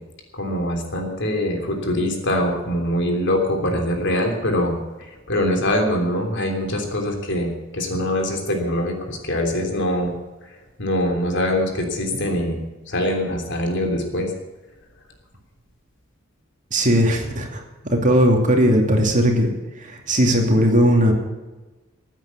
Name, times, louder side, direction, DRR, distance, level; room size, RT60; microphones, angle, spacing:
voice 1, 0.3-10.1 10.8-12.6 12.9-14.3, left 1 dB, 60° left, 3 dB, 3.3 m, -23 dB
voice 2, 16.7-19.5 19.8-21.1, equal, 40° right, 2 dB, 2.7 m, -18 dB
15.0 x 9.2 x 8.4 m, 1.1 s
head